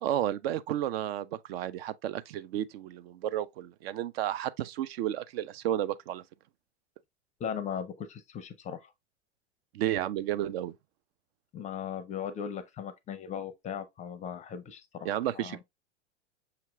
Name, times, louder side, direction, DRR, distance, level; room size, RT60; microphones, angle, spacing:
voice 1, 0.0-6.2 9.7-10.7 15.0-15.6, right 12 dB, 60° right, 0.4 m, -32 dB
voice 2, 7.4-8.9 11.5-15.6, left 8 dB, 20° left, 0.5 m, -38 dB
5.8 x 2.9 x 2.3 m
hypercardioid pair, 100°, 35 cm